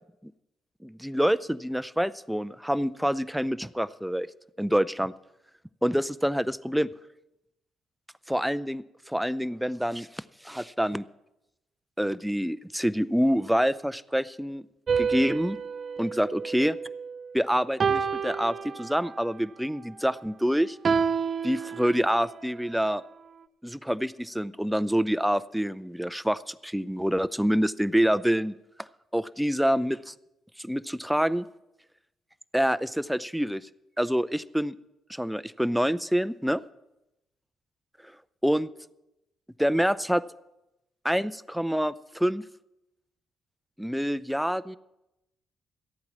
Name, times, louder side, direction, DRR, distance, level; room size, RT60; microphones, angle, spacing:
voice 1, 0.8-4.3 4.6-5.1 5.8-6.9 8.3-11.0 12.0-14.7 15.0-15.6 16.0-16.7 17.3-20.8 21.4-23.0 23.6-28.5 29.1-30.1 30.6-31.5 32.5-33.7 34.0-34.7 35.1-36.6 38.4-38.7 39.6-40.2 41.0-42.4 43.8-44.8, equal, ahead, 17 dB, 0.6 m, -26 dB
sound 1, 14.9-17.2 17.8-19.3 20.9-22.3, right 6 dB, 45° right, 0.7 m, -29 dB
13.5 x 8.8 x 7.0 m, 0.92 s
hypercardioid pair, 45°, 0 cm